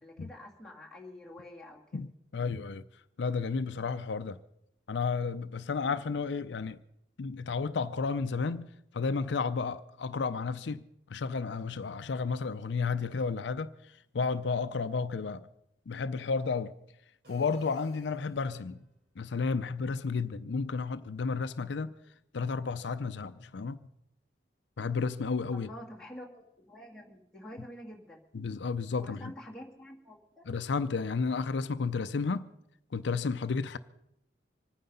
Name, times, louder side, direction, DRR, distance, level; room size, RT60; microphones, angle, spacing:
voice 1, 0.0-2.0 25.5-28.2 28.9-30.4, left 1 dB, 5° left, 2.1 m, -47 dB
voice 2, 2.3-2.8 3.2-4.4 4.9-6.8 7.2-10.8 11.1-15.5 15.9-16.7 17.3-18.8 19.2-21.9 22.3-23.8 24.8-25.7 28.3-29.3 30.5-32.5 32.9-33.8, left 4 dB, 80° left, 0.5 m, -32 dB
sound 1, 17.2-18.8, left 1 dB, 60° right, 4.0 m, -56 dB
25.0 x 9.4 x 5.4 m
head